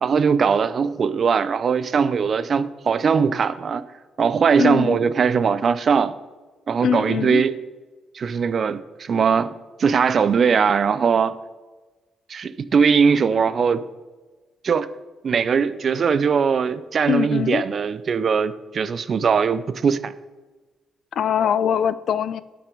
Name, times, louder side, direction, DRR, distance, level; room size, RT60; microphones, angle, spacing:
voice 1, 0.0-3.9 4.2-6.1 6.7-7.6 8.1-9.5 9.8-11.4 12.3-13.8 14.6-14.9 15.2-20.1, right 6 dB, 50° right, 0.5 m, -20 dB
voice 2, 4.6-5.0 6.8-7.4 17.1-17.6 21.2-22.4, left 8 dB, 65° left, 0.4 m, -22 dB
12.0 x 6.0 x 5.4 m
cardioid pair, 90°, 0 cm